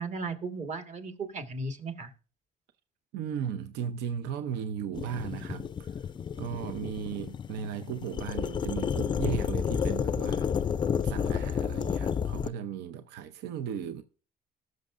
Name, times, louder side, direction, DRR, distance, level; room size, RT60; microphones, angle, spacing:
voice 1, 0.0-2.1, right 3 dB, 45° right, 1.6 m, -36 dB
voice 2, 3.1-6.0 6.4-10.5 11.0-14.0, right 8 dB, 85° right, 0.7 m, -36 dB
sound 1, 4.9-12.5, left 7 dB, 25° left, 0.4 m, -31 dB
19.0 x 6.4 x 2.5 m
cardioid pair, 110°, 17 cm